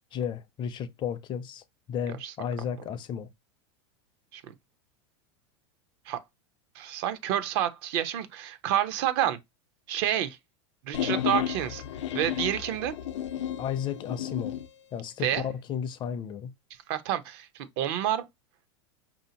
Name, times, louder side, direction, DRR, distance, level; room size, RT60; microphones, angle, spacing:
voice 1, 0.1-3.3 13.6-14.6 14.9-16.5, left 8 dB, 30° left, 0.5 m, -33 dB
voice 2, 6.7-9.4 9.9-10.4 10.8-11.8 12.1-12.9 15.2-15.4 16.9-18.2, right 11 dB, 60° right, 0.7 m, -29 dB
sound 1, 10.9-14.7, left 10 dB, 90° left, 0.5 m, -32 dB
4.9 x 2.7 x 2.7 m
supercardioid pair, 120°, 15 cm